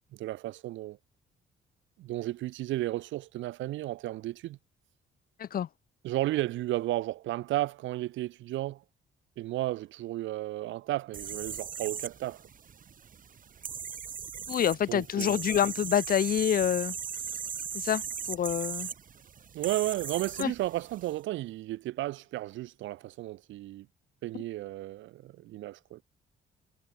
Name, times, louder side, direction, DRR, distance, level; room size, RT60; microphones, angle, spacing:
voice 1, 0.1-1.0 2.0-4.6 6.0-8.8 9.4-12.4 14.9-15.4 19.5-23.9 24.2-26.0, right 16 dB, 75° right, 0.5 m, -33 dB
sound 1, 11.1-21.1, right 7 dB, 45° right, 1.2 m, -39 dB
voice 2, 14.5-16.9 17.7-18.0 18.3-18.9 20.4-20.5, left 9 dB, 50° left, 0.7 m, -27 dB
cardioid pair, 90°, 20 cm